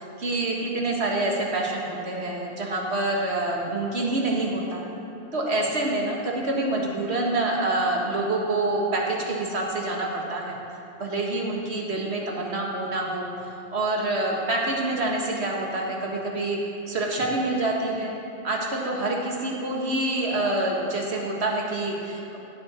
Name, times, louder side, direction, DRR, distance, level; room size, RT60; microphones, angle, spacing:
voice 1, 0.0-4.8 5.3-10.6 11.0-13.3 13.7-16.6 16.9-18.1 18.4-22.4, right 2 dB, 85° right, -1 dB, 1.8 m, -26 dB
16.0 x 7.7 x 4.3 m, 2.9 s
omnidirectional pair, 1.1 m